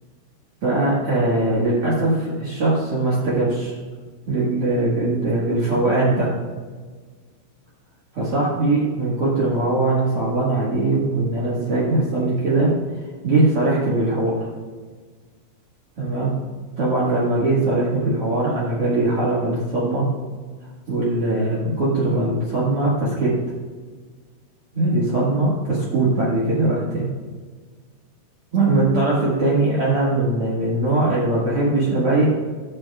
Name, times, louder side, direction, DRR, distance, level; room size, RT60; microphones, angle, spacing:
voice 1, 0.6-3.8 4.2-6.3 8.1-12.7 13.2-14.4 16.0-16.3 16.8-20.0 20.9-23.3 24.7-27.1 28.5-32.3, right 2 dB, 85° right, -7 dB, 1.2 m, -21 dB
18.5 x 6.4 x 2.4 m, 1.5 s
omnidirectional pair, 5.5 m